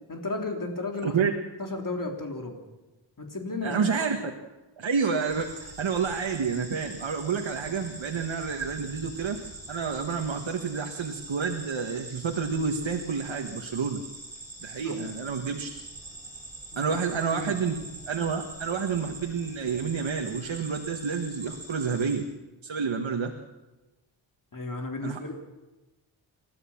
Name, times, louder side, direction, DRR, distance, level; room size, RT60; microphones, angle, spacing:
voice 1, 0.1-1.2 1.6-2.6 3.2-3.9 14.8-14.9 16.7-17.0 17.3-17.6 24.5-25.3, left 2 dB, 45° left, 2 dB, 3.5 m, -33 dB
voice 2, 1.0-1.3 3.6-4.2 4.8-9.4 9.7-14.0 14.6-15.7 16.8-17.8 18.1-22.2 22.6-23.3 25.0-25.2, right 5 dB, 75° right, 3 dB, 1.6 m, -29 dB
sound 1, 5.3-22.2, right 2 dB, 30° right, 6.5 m, -43 dB
28.5 x 13.0 x 7.2 m, 1.1 s
wide cardioid pair, 130°, 46 cm